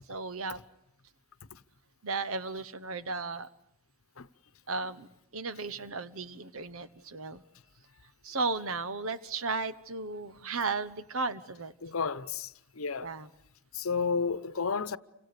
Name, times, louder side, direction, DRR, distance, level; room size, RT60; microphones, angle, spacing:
voice 1, 0.1-0.6 2.0-3.5 4.7-5.1 5.3-7.4 8.2-11.7 13.0-13.3, right 3 dB, 70° right, 1.1 m, -35 dB
voice 2, 11.8-13.1 13.7-15.0, left 5 dB, 75° left, 1.0 m, -32 dB
29.5 x 25.5 x 6.8 m
head